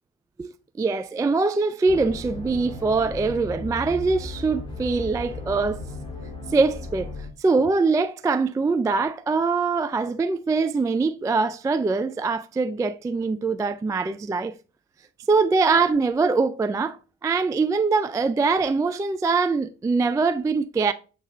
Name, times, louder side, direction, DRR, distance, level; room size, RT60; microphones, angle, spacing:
voice 1, 0.4-5.8 6.5-7.1 7.4-14.5 15.3-20.9, right 4 dB, 10° right, 0.3 m, -23 dB
sound 1, 1.9-7.3, left 2 dB, 15° left, 2.5 m, -36 dB
8.1 x 3.2 x 3.9 m
figure-of-eight pair, 45°, 38 cm